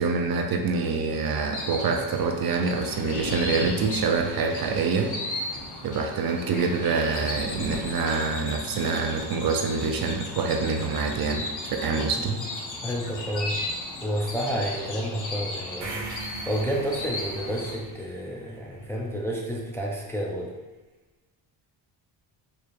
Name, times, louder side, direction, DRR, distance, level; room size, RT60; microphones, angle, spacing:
voice 1, 0.0-5.1 5.4-11.4 11.8-12.4, right 4 dB, 50° right, 4 dB, 0.5 m, -26 dB
sound 1, 1.4-17.8, left 2 dB, 40° left, 0.8 m, -36 dB
Thunder, 2.7-15.3 16.9-17.2, left 1 dB, 60° left, 1.1 m, -44 dB
voice 2, 12.8-13.6 14.0-20.5, equal, 5° left, -2 dB, 0.4 m, -30 dB
sound 2, 15.8-19.9, right 3 dB, 90° right, 1.1 m, -41 dB
4.6 x 3.2 x 2.5 m, 1.2 s
cardioid pair, 95°, 49 cm